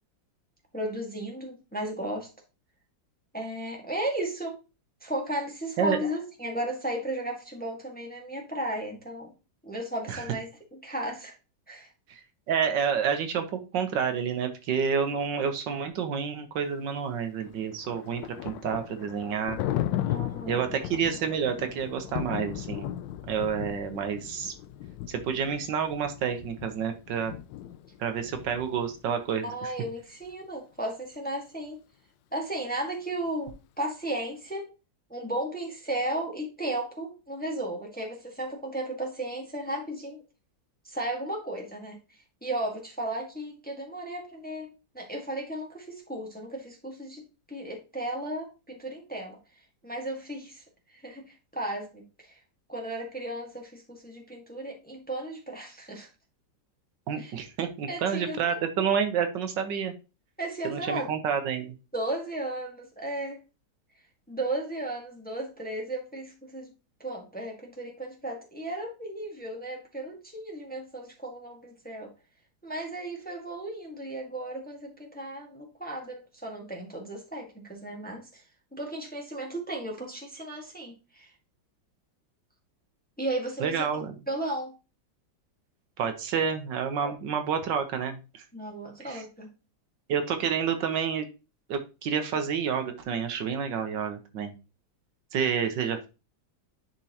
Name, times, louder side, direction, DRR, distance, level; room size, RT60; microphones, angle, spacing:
voice 1, 0.7-2.3 3.3-4.6 5.0-9.3 9.6-11.3 11.7-11.9 20.1-20.7 29.4-31.8 32.3-34.7 35.1-40.2 40.8-42.0 42.4-44.7 44.9-49.4 49.8-50.6 51.0-52.4 52.7-56.1 57.2-57.3 57.9-58.6 60.4-61.1 61.9-63.4 64.3-66.7 67.0-72.1 72.6-78.4 78.7-81.3 83.2-83.9 84.3-84.7 87.0-87.1 88.5-89.5, right 1 dB, 5° left, 0 dB, 1.3 m, -35 dB
voice 2, 12.5-19.6 20.5-22.9 23.3-24.5 25.1-27.3 28.0-29.7 57.1-59.9 60.6-61.7 83.6-84.1 86.0-88.4 89.0-89.2 90.1-91.2 91.7-94.5 95.3-96.1, right 7 dB, 75° right, 7 dB, 1.5 m, -29 dB
Thunder, 17.4-29.2, left 12 dB, 80° left, 1.2 m, -36 dB
10.0 x 4.4 x 2.9 m, 0.30 s
omnidirectional pair, 2.1 m